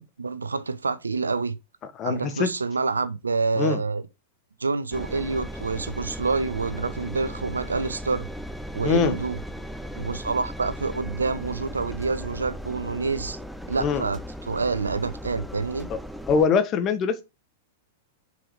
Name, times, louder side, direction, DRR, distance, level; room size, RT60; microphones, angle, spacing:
voice 1, 0.2-1.6 2.0-4.0 4.6-8.3 8.7-9.4 10.0-13.4 13.7-15.9, right 4 dB, 80° right, 0.6 m, -27 dB
voice 2, 2.0-2.5 3.5-3.8 8.8-9.2 13.8-14.0 15.9-16.0 16.3-17.2, left 6 dB, 30° left, 1.3 m, -23 dB
Engine, 4.9-16.5, equal, ahead, 0.6 m, -37 dB
6.1 x 4.7 x 4.8 m
figure-of-eight pair, 100°, 0 cm